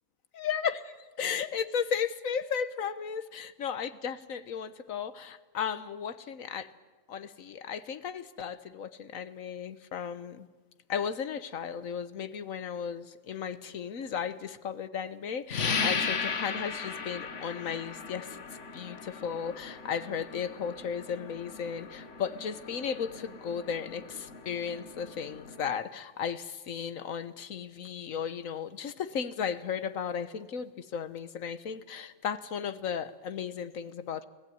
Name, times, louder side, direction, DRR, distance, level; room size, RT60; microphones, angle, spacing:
voice 1, 0.4-0.8 1.2-6.7 7.1-10.5 10.9-18.4 18.7-34.2, left 7 dB, 85° left, 13 dB, 1.5 m, -35 dB
sound 1, 15.5-25.8, left 5 dB, 65° left, 1.7 m, -37 dB
29.0 x 18.0 x 9.4 m, 1.3 s
omnidirectional pair, 1.4 m